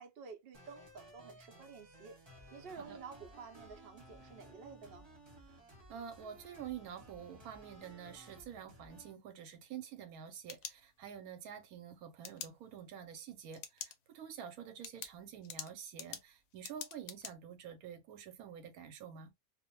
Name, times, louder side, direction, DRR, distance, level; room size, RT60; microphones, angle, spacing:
voice 1, 0.0-2.2 2.5-5.1, right 5 dB, 55° right, 0.6 m, -51 dB
sound 1, 0.5-9.1, right 1 dB, 25° right, 0.8 m, -57 dB
voice 2, 5.9-19.3, right 8 dB, 80° right, 1.1 m, -48 dB
sound 2, 10.1-11.3 12.2-12.5 13.5-14.0 14.3-14.4 14.8-17.3, left 8 dB, 70° left, 0.9 m, -46 dB
2.5 x 2.1 x 2.8 m
omnidirectional pair, 1.5 m